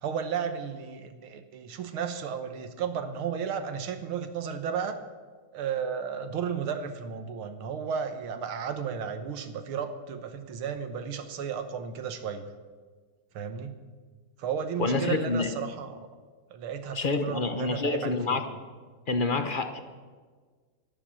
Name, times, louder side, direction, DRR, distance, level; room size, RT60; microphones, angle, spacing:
voice 1, 0.0-5.0 5.5-12.5 13.3-13.8 14.4-16.1 16.5-18.4, right 7 dB, 80° right, 8 dB, 2.0 m, -33 dB
voice 2, 14.8-15.5 16.9-18.5 19.1-19.8, left 3 dB, 50° left, 8 dB, 0.6 m, -27 dB
12.5 x 12.0 x 8.7 m, 1.5 s
omnidirectional pair, 2.3 m